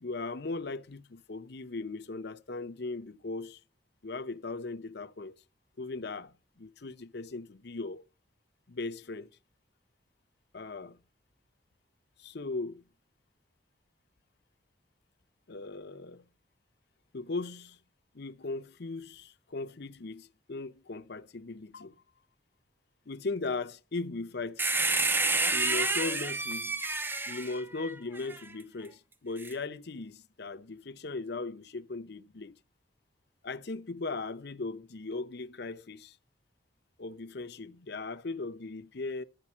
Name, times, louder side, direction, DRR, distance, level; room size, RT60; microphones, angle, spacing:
voice 1, 0.0-3.6 4.0-5.3 5.8-8.0 8.7-9.3 10.5-11.0 12.2-12.8 15.5-16.2 17.1-17.8 18.1-21.9 23.1-24.7 25.1-25.2 25.5-26.8 27.3-32.5 33.4-36.2 37.0-39.2, left 3 dB, 60° left, 0.8 m, -38 dB
sound 1, 24.6-28.4 29.4-29.5, right 3 dB, 10° right, 0.5 m, -29 dB
13.5 x 5.3 x 8.5 m
head